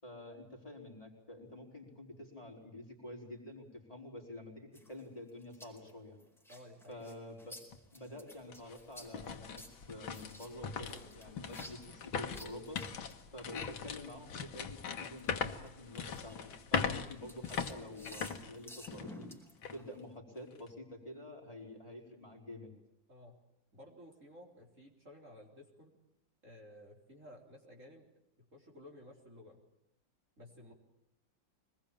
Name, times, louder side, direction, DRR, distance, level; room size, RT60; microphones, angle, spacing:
voice 1, 0.0-6.2 6.9-7.6 7.9-12.8 13.3-19.3 19.7-22.7, left 1 dB, 15° left, -2 dB, 5.0 m, -48 dB
sound 1, 4.7-14.6 15.0-20.1, left 1 dB, ahead, 4.7 m, -55 dB
voice 2, 6.5-7.0 16.9-17.2 23.1-23.4 23.7-26.0 26.4-28.1 28.5-29.6 30.4-30.7, left 1 dB, 40° right, -1 dB, 4.3 m, -55 dB
sound 2, 7.7-7.8 8.3-19.2 19.6-19.8 20.3-20.7, left 6 dB, 85° left, 2.3 m, -40 dB
24.5 x 20.5 x 9.0 m, 0.80 s
omnidirectional pair, 2.1 m